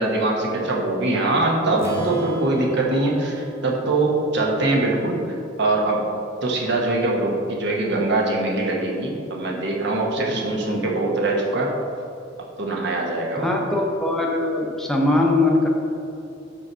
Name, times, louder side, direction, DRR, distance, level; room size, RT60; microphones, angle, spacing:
voice 1, 0.0-5.2 5.6-6.0 6.4-11.7 12.6-13.6, right 2 dB, 60° right, -1 dB, 1.2 m, -22 dB
Strum, 1.8-5.7, right 3 dB, 15° right, 1.1 m, -35 dB
voice 2, 13.3-15.7, left 2 dB, 5° left, -1 dB, 0.8 m, -21 dB
5.9 x 4.6 x 6.2 m, 2.6 s
head